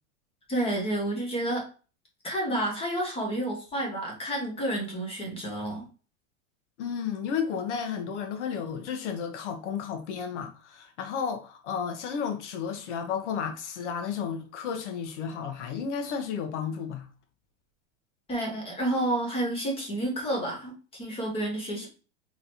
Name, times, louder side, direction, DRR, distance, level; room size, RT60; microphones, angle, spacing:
voice 1, 0.5-1.7 2.2-5.8 18.3-21.9, right 1 dB, 15° left, 1.2 m, -30 dB
voice 2, 6.8-17.1, left 7 dB, 75° left, 1.0 m, -32 dB
3.9 x 3.1 x 2.7 m
supercardioid pair, 150°, 35 cm